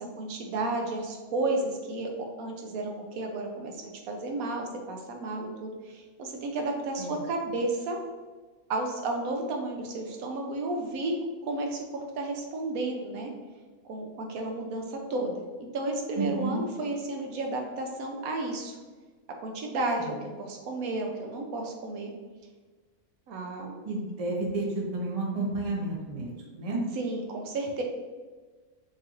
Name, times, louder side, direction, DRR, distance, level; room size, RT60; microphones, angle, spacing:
voice 1, 0.0-2.1 2.4-8.0 8.7-13.3 13.8-15.5 15.7-18.8 19.4-22.1 23.3-23.8 26.9-27.8, right 2 dB, 75° right, 2 dB, 1.0 m, -32 dB
voice 2, 16.2-16.6 20.0-20.1 23.8-26.8, right 2 dB, 35° right, -3 dB, 0.7 m, -31 dB
4.7 x 2.5 x 2.9 m, 1.3 s
omnidirectional pair, 1.6 m